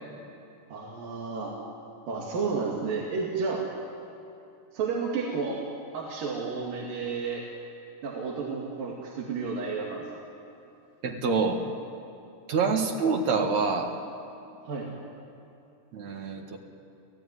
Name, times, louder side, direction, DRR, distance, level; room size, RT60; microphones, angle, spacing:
voice 1, 0.7-1.5 2.1-3.7 4.7-5.6 5.9-7.4 8.0-10.1 14.6-14.9, right 4 dB, 80° right, -2 dB, 4.1 m, -31 dB
voice 2, 11.0-11.6 12.5-13.9 15.9-16.6, right 4 dB, 60° right, 3 dB, 2.8 m, -26 dB
29.5 x 16.0 x 9.9 m, 2.7 s
omnidirectional pair, 3.9 m